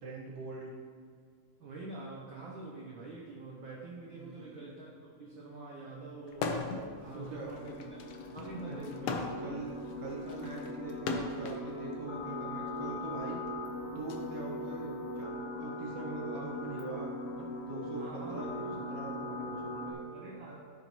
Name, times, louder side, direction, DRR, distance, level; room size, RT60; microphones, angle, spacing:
voice 1, 0.0-0.7 4.1-4.5 7.1-7.5 8.7-8.9 9.4-13.4 14.0-20.0, right 3 dB, 55° right, -3 dB, 2.0 m, -43 dB
voice 2, 1.6-7.8 8.3-9.4 17.9-18.8 20.1-20.6, right 3 dB, 85° right, -4 dB, 1.0 m, -46 dB
sound 1, 4.9-19.9, left 1 dB, 55° left, 1.9 m, -41 dB
sound 2, 6.3-6.9 7.3-11.6 12.5-14.2, left 4 dB, 75° left, 1.5 m, -38 dB
13.0 x 5.8 x 3.0 m, 2.2 s
omnidirectional pair, 3.6 m